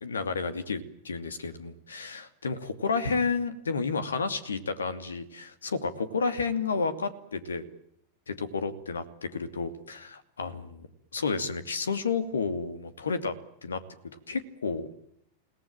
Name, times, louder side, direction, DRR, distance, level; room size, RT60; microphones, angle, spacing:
voice 1, 0.0-7.6 8.3-10.9 11.1-13.3 13.6-13.8 14.3-14.9, left 4 dB, 70° left, 12 dB, 2.6 m, -31 dB
28.5 x 19.0 x 9.0 m, 0.76 s
figure-of-eight pair, 90°, 0 cm